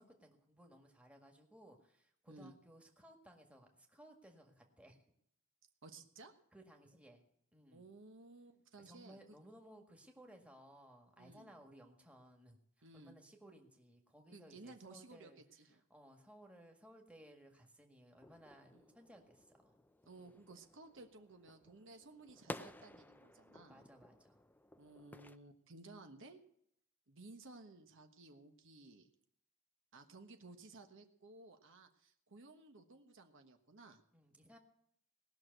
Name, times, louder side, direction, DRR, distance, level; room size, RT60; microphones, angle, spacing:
voice 1, 0.0-5.0 6.5-7.2 7.5-7.8 8.8-15.4 15.9-19.8 20.1-20.4 23.7-24.4 34.1-34.6, right 1 dB, 5° right, 2 dB, 1.8 m, -60 dB
voice 2, 5.8-6.3 7.7-9.2 11.2-11.5 12.8-13.1 14.3-15.8 18.7-18.9 20.1-23.8 24.8-26.4 27.1-29.1 29.9-34.0, right 3 dB, 65° right, 5 dB, 1.3 m, -57 dB
sound 1, 18.2-25.4, left 1 dB, 10° left, 0.4 m, -54 dB
19.0 x 6.4 x 7.9 m, 0.71 s
head